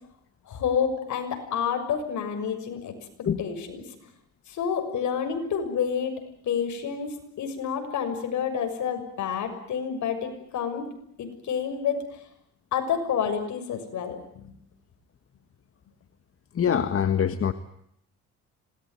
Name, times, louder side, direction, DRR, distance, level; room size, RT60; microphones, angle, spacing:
voice 1, 0.5-2.9 3.4-3.8 4.5-6.1 6.4-10.8 11.2-12.0 12.7-14.5, left 7 dB, 70° left, 6 dB, 6.6 m, -29 dB
voice 2, 16.5-17.5, left 8 dB, 45° left, 10 dB, 1.6 m, -24 dB
26.5 x 20.0 x 9.4 m, 0.75 s
cardioid pair, 90°, 30 cm